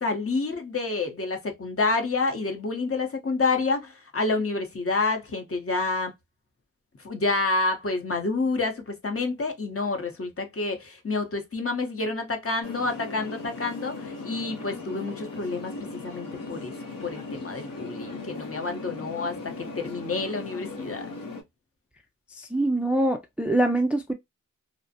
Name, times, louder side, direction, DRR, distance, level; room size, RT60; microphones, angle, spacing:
voice 1, 0.0-6.1 7.0-16.7 17.0-21.1, left 3 dB, 45° left, 0.7 m, -28 dB
sound 1, 12.6-21.4, left 3 dB, 90° left, 0.7 m, -38 dB
voice 2, 22.4-24.1, right 1 dB, 5° right, 0.3 m, -24 dB
2.4 x 2.0 x 2.6 m
wide cardioid pair, 65°, 32 cm